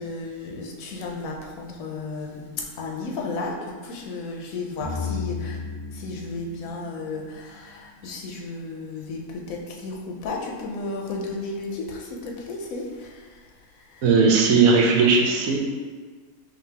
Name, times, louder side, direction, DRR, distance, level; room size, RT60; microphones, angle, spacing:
voice 1, 0.0-3.6 3.8-5.6 5.9-14.0, left 3 dB, 80° left, 0 dB, 1.1 m, -34 dB
sound 1, 4.8-7.7, left 5 dB, 40° right, 0.7 m, -33 dB
voice 2, 14.0-15.6, right 4 dB, 80° right, 1 dB, 1.0 m, -17 dB
5.3 x 2.6 x 2.8 m, 1.5 s
omnidirectional pair, 1.4 m